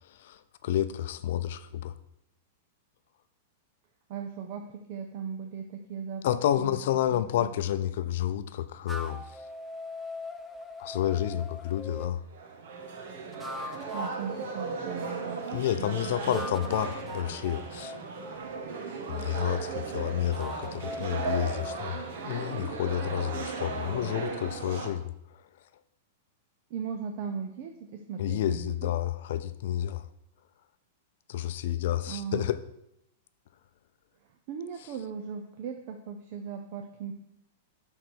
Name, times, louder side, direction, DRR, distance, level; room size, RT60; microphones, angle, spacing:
voice 1, 0.1-1.9 6.2-9.3 10.8-12.2 15.5-18.0 19.1-22.0 22.2-25.0 28.2-30.0 31.3-32.6, left 11 dB, 65° left, 12 dB, 0.5 m, -30 dB
voice 2, 4.1-6.8 7.1-7.5 13.9-16.5 26.7-28.9 32.1-32.5 34.5-37.1, right 7 dB, 45° right, 4 dB, 0.8 m, -38 dB
sound 1, 8.9-12.1 13.2-15.3 16.2-19.5 20.2-23.8, left 2 dB, ahead, 0.7 m, -42 dB
sound 2, 12.3-24.9, right 4 dB, 65° right, 1.4 m, -36 dB
8.3 x 3.9 x 6.2 m, 0.78 s
supercardioid pair, 150°, 0 cm